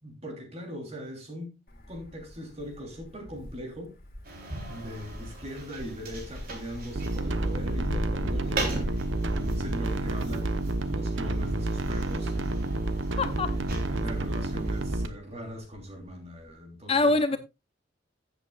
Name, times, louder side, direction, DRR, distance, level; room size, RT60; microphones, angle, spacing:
voice 1, 0.0-1.6 1.9-4.0 4.7-8.9 9.3-12.6 13.4-17.4, equal, 35° right, 3.1 m, -40 dB
Wind, 1.7-16.6, left 1 dB, 55° left, 2.3 m, -42 dB
sound 1, 4.2-15.0, right 2 dB, 50° right, 3.4 m, -40 dB
sound 2, 7.0-15.1, right 2 dB, 85° right, 1.0 m, -30 dB
voice 2, 13.2-13.6 16.9-17.4, left 3 dB, 30° left, 0.6 m, -24 dB
15.0 x 8.1 x 2.3 m
head